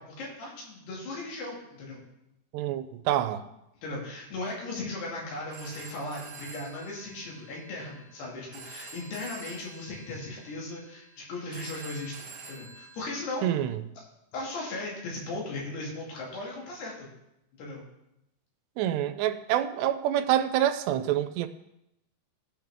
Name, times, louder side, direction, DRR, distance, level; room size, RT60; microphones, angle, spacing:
voice 1, 0.0-2.0 3.8-13.5 14.0-14.1 14.3-17.1 17.5-17.8, left 2 dB, 75° left, 4.2 m, -37 dB
voice 2, 2.5-3.4 13.4-13.8 18.8-21.5, right 11 dB, 90° right, 2.8 m, -27 dB
Telephone, 5.3-13.2, right 4 dB, 55° right, 2.3 m, -48 dB
17.0 x 5.9 x 3.5 m
omnidirectional pair, 4.8 m